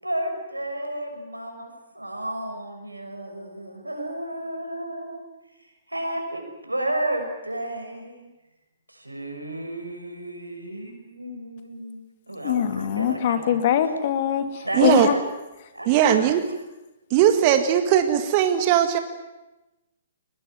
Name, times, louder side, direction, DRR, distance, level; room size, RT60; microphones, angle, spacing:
voice 1, 0.0-5.2 5.6-8.3 8.9-13.9 14.6-15.2 15.7-16.2, right 1 dB, 90° right, 4 dB, 6.3 m, -32 dB
voice 2, 12.4-15.2, left 9 dB, 45° left, 9 dB, 2.4 m, -22 dB
voice 3, 14.8-15.1 15.9-16.4 17.1-19.0, right 10 dB, 35° right, 8 dB, 1.9 m, -19 dB
22.0 x 21.0 x 9.4 m, 1.0 s
figure-of-eight pair, 120°, 0 cm